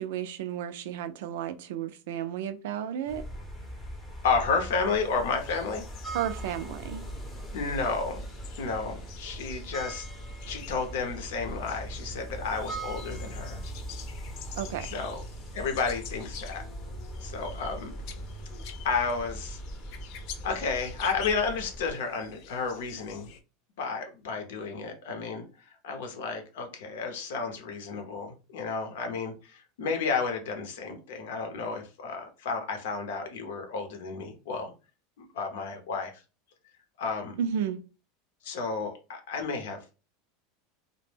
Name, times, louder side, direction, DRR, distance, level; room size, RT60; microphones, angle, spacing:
voice 1, 0.0-3.2 6.1-7.0 14.6-14.9 37.4-37.8, right 9 dB, 75° right, 10 dB, 0.4 m, -32 dB
sound 1, 3.1-21.9, right 1 dB, 10° left, 0.7 m, -40 dB
voice 2, 4.2-5.8 7.5-8.2 8.6-10.1 10.5-13.6 14.8-15.2 15.5-16.7 17.2-17.9 18.8-19.6 20.4-23.3 23.8-34.7 35.2-36.2 37.0-37.4 38.4-39.9, left 4 dB, 80° left, 5 dB, 0.7 m, -32 dB
sound 2, 5.4-23.4, left 8 dB, 55° left, 0.4 m, -48 dB
2.1 x 2.1 x 3.2 m, 0.32 s
supercardioid pair, 145°, 0 cm